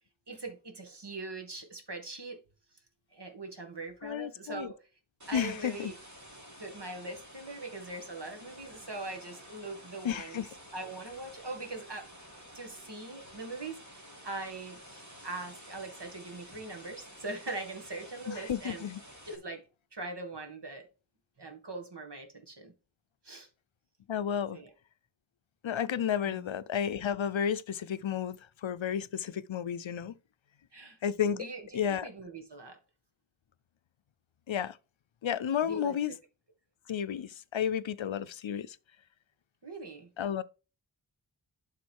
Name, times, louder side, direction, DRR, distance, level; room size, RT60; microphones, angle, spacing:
voice 1, 0.3-2.4 3.1-4.9 5.3-5.9 6.6-10.4 10.7-12.1 12.5-18.8 19.3-19.6 19.9-20.8 21.4-22.7 23.2-23.5 24.5-24.7 26.3-26.5 30.7-31.0 31.3-32.8 35.7-36.0 39.6-40.1, right 2 dB, 60° right, 2.1 m, -41 dB
voice 2, 4.0-4.7 5.3-5.9 10.0-10.5 18.3-19.0 24.1-24.6 25.6-30.1 31.0-31.4 31.7-32.1 34.5-34.8 35.2-36.1 36.9-38.8 40.2-40.4, left 8 dB, 75° left, 0.6 m, -32 dB
sound 1, 5.2-19.4, equal, 35° right, 2.7 m, -51 dB
11.5 x 3.9 x 4.7 m
wide cardioid pair, 45°, 47 cm